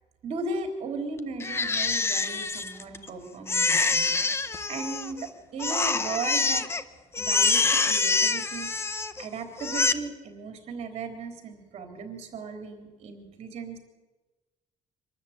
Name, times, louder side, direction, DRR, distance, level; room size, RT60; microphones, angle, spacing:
voice 1, 0.2-6.6 7.2-8.7 9.2-13.8, right 4 dB, 45° right, 5 dB, 3.7 m, -36 dB
Crying sobbing, 1.4-3.1 3.5-5.3 5.6-6.8 7.1-9.2 9.6-9.9, left 4 dB, 20° left, 0.7 m, -25 dB
24.0 x 13.0 x 9.0 m, 1.2 s
cardioid pair, 175°, 14 cm